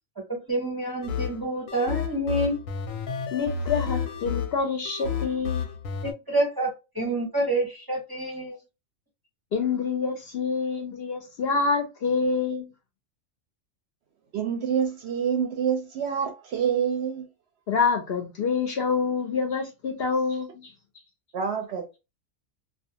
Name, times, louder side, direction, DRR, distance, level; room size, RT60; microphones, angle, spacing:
voice 1, 0.3-2.6 6.0-8.6, right 1 dB, 25° right, 0.5 m, -28 dB
sound 1, 1.0-6.1, left 6 dB, 90° left, 1.0 m, -31 dB
voice 2, 3.3-5.6 9.5-12.7 17.7-20.7, left 5 dB, 60° left, 0.7 m, -27 dB
voice 3, 14.3-17.3 21.3-22.0, right 7 dB, 65° right, 0.7 m, -27 dB
2.4 x 2.3 x 2.7 m
omnidirectional pair, 1.4 m